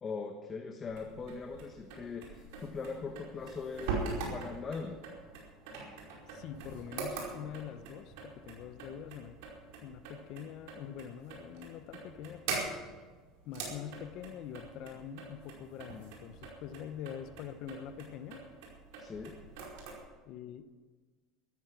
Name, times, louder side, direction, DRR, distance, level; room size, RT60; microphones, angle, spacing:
voice 1, 0.0-4.0 4.3-5.0 19.0-19.3, left 5 dB, 25° left, 4 dB, 1.3 m, -40 dB
sound 1, 0.9-19.9, right 4 dB, 80° right, 4.9 m, -43 dB
voice 2, 6.3-9.4 9.8-12.6 13.4-18.4 20.2-20.7, left 9 dB, 60° left, 11 dB, 0.9 m, -45 dB
14.0 x 13.5 x 6.1 m, 1.3 s
supercardioid pair, 125°, 0 cm